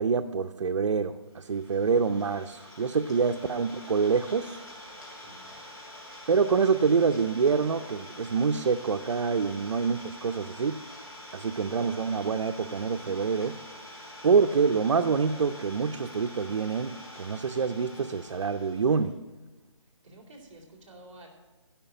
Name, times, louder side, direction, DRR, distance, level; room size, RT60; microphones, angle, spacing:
voice 1, 0.0-4.6 6.3-10.8 11.3-13.6 14.2-19.2, right 5 dB, 75° right, 6 dB, 0.6 m, -26 dB
Idling, 1.4-19.1, left 1 dB, 40° left, 2.7 m, -46 dB
voice 2, 5.1-5.6 19.8-21.3, right 1 dB, 20° right, -7 dB, 2.7 m, -52 dB
11.5 x 5.8 x 8.9 m, 1.2 s
hypercardioid pair, 175°, 16 cm